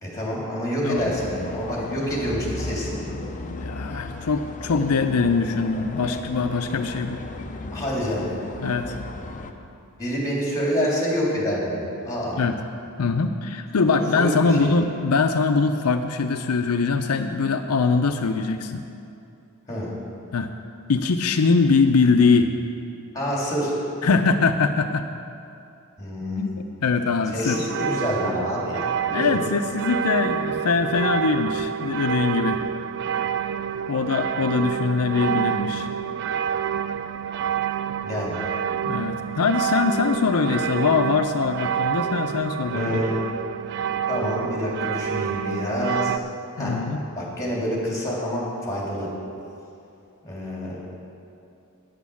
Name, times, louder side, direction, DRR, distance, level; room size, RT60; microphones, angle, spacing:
voice 1, 0.0-3.2 7.7-8.3 10.0-12.4 13.9-14.7 19.7-19.9 23.1-23.7 26.0-26.4 27.3-29.4 38.0-38.4 42.7-43.2 44.1-46.1 46.6-46.7 47.1-49.1 50.2-50.8, equal, 15° left, -4 dB, 3.2 m, -27 dB
sound 1, 0.9-9.5, left 2 dB, 35° left, 0.6 m, -35 dB
voice 2, 3.4-7.2 8.6-9.0 12.4-12.6 13.0-18.8 20.3-20.5 20.9-22.5 24.0-25.1 26.3-26.5 26.8-27.6 29.1-32.6 33.9-35.9 38.8-43.0 46.6-47.0, left 4 dB, 90° left, 6 dB, 0.5 m, -22 dB
sound 2, 27.5-46.2, right 8 dB, 50° right, 0.3 m, -28 dB
9.5 x 8.5 x 7.1 m, 2.6 s
head